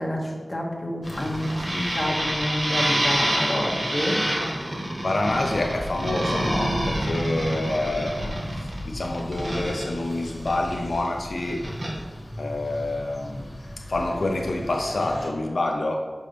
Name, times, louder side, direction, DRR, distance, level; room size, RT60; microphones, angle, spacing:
voice 1, 0.0-4.2 5.2-5.3, left 1 dB, 30° left, -2 dB, 1.8 m, -28 dB
sound 1, 1.0-15.3, left 1 dB, 55° left, 1.7 m, -38 dB
sound 2, 1.1-11.1 11.4-11.9, right 1 dB, 60° right, 1.8 m, -27 dB
voice 2, 5.0-8.2 8.5-11.6 12.4-13.5 13.9-15.9, left 2 dB, 90° left, 2 dB, 0.6 m, -27 dB
10.5 x 5.4 x 3.4 m, 1.4 s
wide cardioid pair, 60°, 0 cm